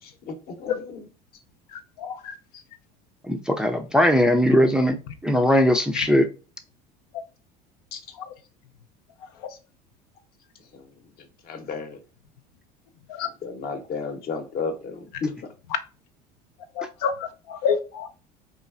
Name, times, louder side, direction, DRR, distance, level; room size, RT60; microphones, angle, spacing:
voice 1, 0.0-1.1 7.9-8.0 9.5-9.6 10.7-10.8 11.4-12.0 13.4-15.3, left 4 dB, 50° left, 0.8 m, -33 dB
voice 2, 2.0-2.3 5.9-6.1 13.1-13.3 16.8-18.1, left 7 dB, 80° left, 0.4 m, -27 dB
voice 3, 3.3-5.0 5.2-6.3, equal, 5° right, 0.4 m, -19 dB
3.0 x 2.3 x 2.3 m
hypercardioid pair, 85°, 20 cm